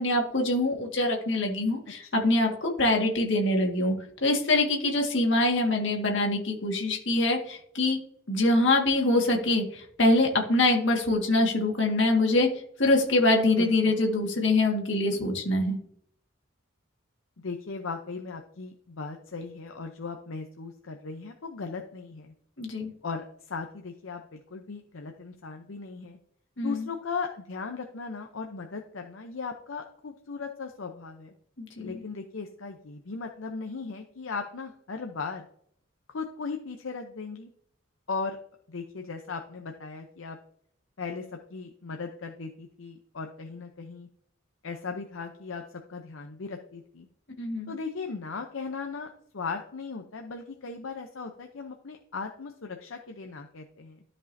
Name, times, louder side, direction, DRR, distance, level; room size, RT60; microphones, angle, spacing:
voice 1, 0.0-3.9 4.2-8.0 8.3-12.5 12.8-15.8 22.6-22.9 26.6-26.9 31.6-32.0 47.4-47.7, left 2 dB, 65° left, 1 dB, 1.8 m, -24 dB
voice 2, 13.6-14.0 17.4-22.3 23.0-26.2 26.6-31.3 31.8-35.4 36.1-37.5 38.1-38.4 38.7-40.4 41.0-41.2 41.5-44.1 44.6-45.6 45.9-47.1 47.7-54.0, left 4 dB, 80° left, 4 dB, 0.7 m, -37 dB
13.0 x 5.4 x 2.7 m, 0.66 s
head